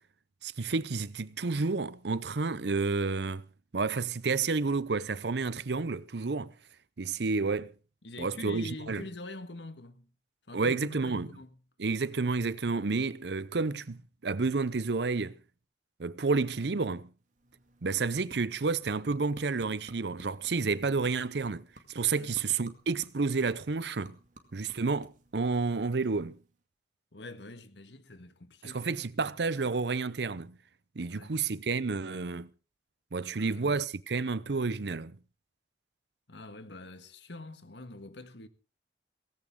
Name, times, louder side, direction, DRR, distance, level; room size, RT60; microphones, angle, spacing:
voice 1, 0.4-3.4 3.7-6.5 7.0-7.7 8.2-9.0 10.5-11.3 11.8-15.4 16.0-17.1 17.8-24.2 24.5-26.4 28.6-30.6 31.0-32.5 33.1-35.2, right 4 dB, 75° right, 0.7 m, -30 dB
voice 2, 8.0-10.1 10.5-11.6 22.1-22.3 27.1-28.9 31.1-31.3 33.4-33.7 36.3-38.5, left 2 dB, 85° left, 1.6 m, -45 dB
sound 1, 17.2-26.6, right 1 dB, 45° right, 2.3 m, -56 dB
17.5 x 16.5 x 3.7 m
head